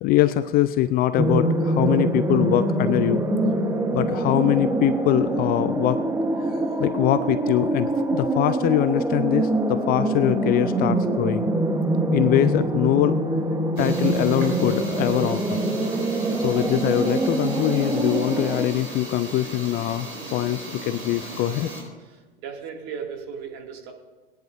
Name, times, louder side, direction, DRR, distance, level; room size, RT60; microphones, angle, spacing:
voice 1, 0.0-3.3 3.9-6.0 6.5-6.6 6.8-11.5 12.1-13.2 13.8-15.7 16.4-21.7, left 13 dB, 30° left, 13 dB, 0.4 m, -23 dB
sound 1, 1.2-18.7, right 2 dB, 10° right, 1.1 m, -24 dB
sound 2, 13.8-21.8, right 2 dB, 70° right, 4.5 m, -37 dB
voice 2, 22.1-23.9, right 6 dB, 50° right, 2 dB, 2.3 m, -36 dB
19.5 x 10.5 x 2.6 m, 1.3 s
hypercardioid pair, 95°, 31 cm